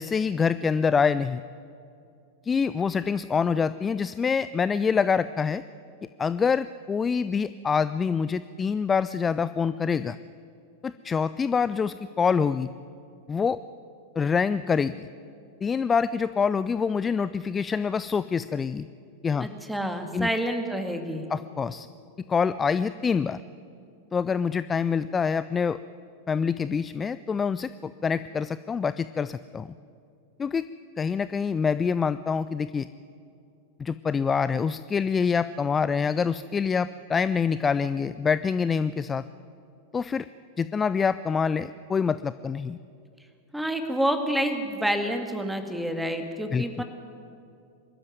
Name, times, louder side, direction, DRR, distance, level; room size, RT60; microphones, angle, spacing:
voice 1, 0.0-1.4 2.4-5.6 6.2-10.2 10.8-12.7 13.3-13.6 14.2-15.1 15.6-18.9 19.2-19.5 20.1-20.3 21.3-21.9 22.3-23.4 24.1-25.8 26.3-29.7 30.4-30.6 31.0-32.9 33.8-39.2 39.9-40.3 40.6-42.8 46.5-46.8, left 6 dB, 20° left, 15 dB, 0.4 m, -26 dB
voice 2, 19.4-21.3 43.5-46.8, equal, 5° right, 6 dB, 2.1 m, -28 dB
24.0 x 13.0 x 9.4 m, 2.5 s
figure-of-eight pair, 90°, 0 cm